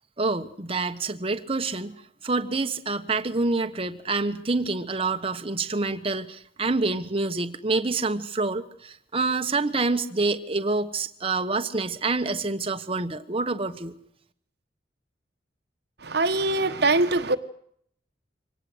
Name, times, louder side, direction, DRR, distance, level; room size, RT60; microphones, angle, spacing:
voice 1, 0.2-1.9 2.2-13.9, right 3 dB, 30° right, 1.3 m, -27 dB
voice 2, 16.1-17.4, right 2 dB, 65° right, 1.4 m, -22 dB
24.5 x 18.5 x 8.0 m
head